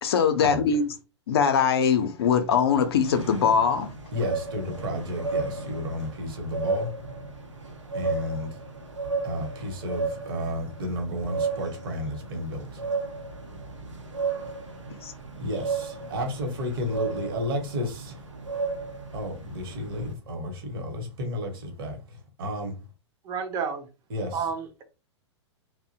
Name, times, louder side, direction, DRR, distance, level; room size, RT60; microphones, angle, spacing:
voice 1, 0.0-0.9 1.3-3.9 15.0-15.1, left 6 dB, 55° left, 0.5 m, -22 dB
sound 1, 2.7-20.1, right 4 dB, 85° right, 0.7 m, -34 dB
voice 2, 4.1-6.9 7.9-8.6 9.2-12.8 15.4-18.2 19.1-22.7 24.1-24.4, left 1 dB, 50° right, 0.9 m, -32 dB
voice 3, 23.2-23.9 24.3-24.8, right 6 dB, 25° right, 0.5 m, -30 dB
2.6 x 2.1 x 2.6 m
figure-of-eight pair, 105°, 15 cm